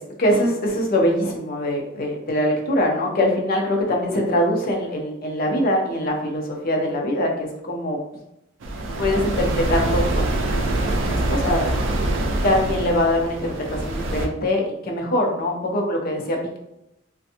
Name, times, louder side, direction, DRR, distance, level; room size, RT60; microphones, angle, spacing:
voice 1, 0.0-8.0 9.0-11.7 12.4-16.6, left 1 dB, 50° left, 0 dB, 0.6 m, -23 dB
sound 1, 8.6-14.3, right 1 dB, 70° right, 0.4 m, -24 dB
2.5 x 2.2 x 2.7 m, 0.85 s
head